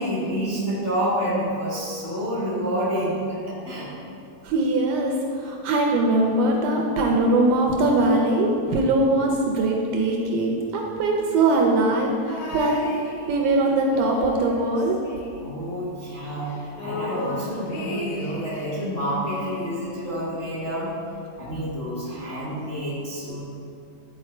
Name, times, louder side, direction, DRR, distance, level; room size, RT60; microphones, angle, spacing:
voice 1, 0.0-3.9 15.4-21.0 21.4-23.4, equal, 40° left, -8 dB, 1.2 m, -28 dB
voice 2, 4.4-5.2 5.4-12.8 13.3-15.0, right 2 dB, 75° right, 0 dB, 1.9 m, -21 dB
sound 1, 12.3-13.6 13.9-15.8 16.1-16.2 16.4-18.8 19.3-20.5 21.4-21.5, left 1 dB, 80° left, 1.2 m, -35 dB
10.5 x 4.6 x 4.3 m, 2.6 s
omnidirectional pair, 3.9 m